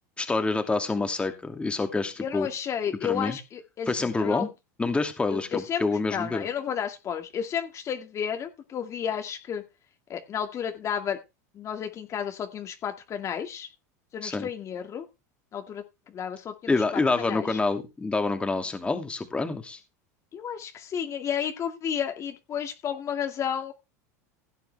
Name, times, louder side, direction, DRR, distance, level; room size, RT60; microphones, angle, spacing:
voice 1, 0.2-2.5 3.0-3.4 3.9-4.5 4.8-6.5 14.2-14.5 16.7-19.8, left 3 dB, 10° left, 6 dB, 2.4 m, -27 dB
voice 2, 2.2-4.5 5.3-9.6 10.1-11.2 11.5-13.7 14.1-15.1 15.5-17.6 20.3-23.7, left 8 dB, 35° left, 5 dB, 2.0 m, -32 dB
16.5 x 9.1 x 3.4 m, 0.25 s
supercardioid pair, 120°, 9 cm